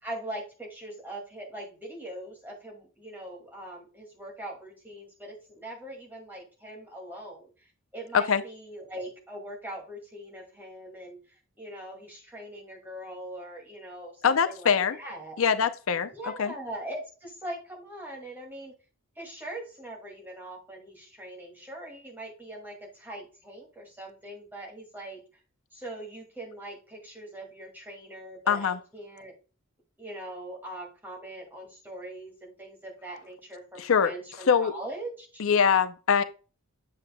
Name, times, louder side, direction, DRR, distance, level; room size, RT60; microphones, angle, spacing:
voice 1, 0.0-15.4 16.1-18.7 19.2-25.2 25.7-29.3 30.0-35.4, right 1 dB, 10° right, 2.1 m, -41 dB
voice 2, 14.2-15.0 15.4-16.5 28.5-28.8 33.8-34.1 34.5-34.7 35.4-36.2, left 6 dB, 65° left, 0.5 m, -23 dB
7.9 x 7.4 x 2.2 m
head